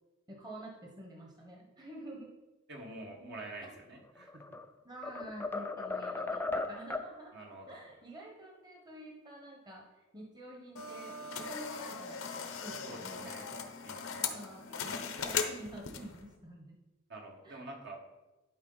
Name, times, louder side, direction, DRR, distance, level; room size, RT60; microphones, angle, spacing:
voice 1, 0.3-2.3 4.8-7.3 7.7-13.7 14.3-16.8 17.4-17.6, right 1 dB, 20° right, -1 dB, 1.1 m, -49 dB
voice 2, 2.7-4.6 7.3-7.9 12.8-13.5 13.8-14.3 17.1-18.0, right 2 dB, 60° right, 0 dB, 1.5 m, -47 dB
sound 1, 4.2-4.7 5.0-7.1, left 3 dB, 10° left, 0.4 m, -36 dB
sound 2, 10.8-16.2, left 6 dB, 85° left, 0.9 m, -38 dB
11.5 x 4.7 x 4.0 m, 1.1 s
head